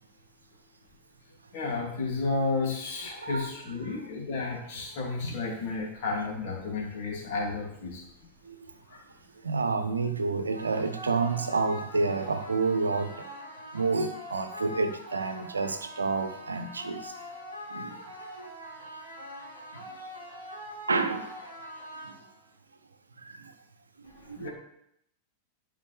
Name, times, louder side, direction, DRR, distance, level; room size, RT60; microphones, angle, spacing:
voice 1, 1.5-8.0 8.9-9.0 24.1-24.5, left 3 dB, 50° left, -1 dB, 2.7 m, -32 dB
voice 2, 9.4-13.1 13.7-17.1 17.7-18.0 18.4-18.5 20.9-21.3 24.3-24.5, right 4 dB, 75° right, 9 dB, 0.8 m, -29 dB
sound 1, 10.5-22.5, equal, 85° left, 2.9 m, -43 dB
11.5 x 5.1 x 3.4 m, 0.75 s
figure-of-eight pair, 90°, 0 cm